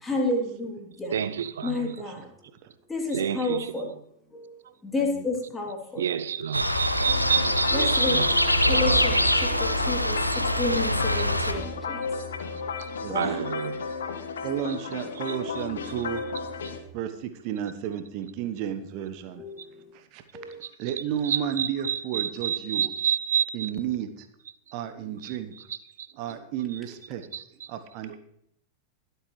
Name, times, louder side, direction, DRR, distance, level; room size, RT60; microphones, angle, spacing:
voice 1, 0.0-1.1 1.6-2.2 2.9-3.9 4.3-4.5 4.8-6.0 7.7-8.2 8.7-12.0 13.1-13.4 19.4-19.5 20.3-20.6, left 2 dB, 10° left, 0 dB, 3.0 m, -30 dB
voice 2, 1.1-2.1 3.1-4.0 4.6-4.7 6.0-9.2 10.3-10.4 12.0-12.1 12.8-13.9 14.6-14.8 15.1-16.2 19.6-19.7 20.6-23.8 24.4-24.5 25.2-26.1 26.7-26.8 27.3-27.7, right 8 dB, 65° right, 15 dB, 0.6 m, -31 dB
sound 1, 6.5-11.5, equal, 90° left, 0.8 m, -24 dB
sound 2, 7.0-16.8, left 5 dB, 65° left, 1.2 m, -34 dB
voice 3, 13.0-13.3 14.4-16.2 16.9-19.4 19.9-20.2 20.8-22.9 23.5-24.3 24.7-25.5 26.1-27.2 27.7-28.2, right 9 dB, 45° right, 9 dB, 1.2 m, -32 dB
21.5 x 8.0 x 3.3 m, 0.72 s
figure-of-eight pair, 90°, 0 cm